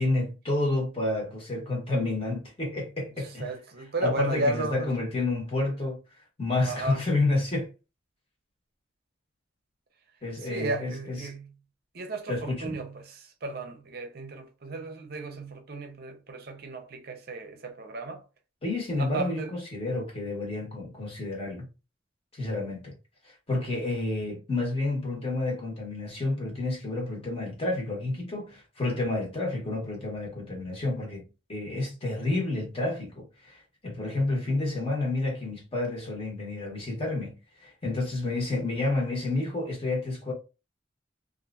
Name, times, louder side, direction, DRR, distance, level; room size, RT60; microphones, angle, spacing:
voice 1, 0.0-3.5 4.0-6.0 6.4-7.7 10.2-11.3 12.3-12.8 18.6-21.6 22.3-22.9 23.2-31.2 31.5-37.3 37.6-40.3, left 2 dB, 30° left, 1.1 m, -30 dB
voice 2, 3.2-4.9 6.6-7.1 10.4-11.5 11.9-18.2 19.0-19.5, right 2 dB, 55° right, 0.6 m, -34 dB
2.8 x 2.4 x 2.4 m
head